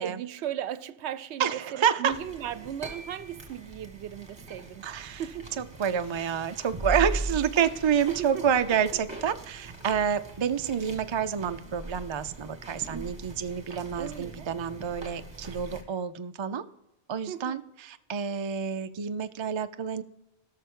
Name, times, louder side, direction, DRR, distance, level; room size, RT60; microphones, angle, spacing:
voice 1, 0.0-4.9 5.2-5.6 8.1-8.4 8.9-9.0 14.0-14.5 17.3-17.6, right 10 dB, 75° right, 0.8 m, -36 dB
voice 2, 1.4-2.1 4.8-5.2 5.6-16.6 17.1-20.0, right 7 dB, 45° right, 0.3 m, -28 dB
sound 1, 2.1-15.8, right 2 dB, 25° right, 1.7 m, -40 dB
17.0 x 6.6 x 3.7 m
omnidirectional pair, 1.2 m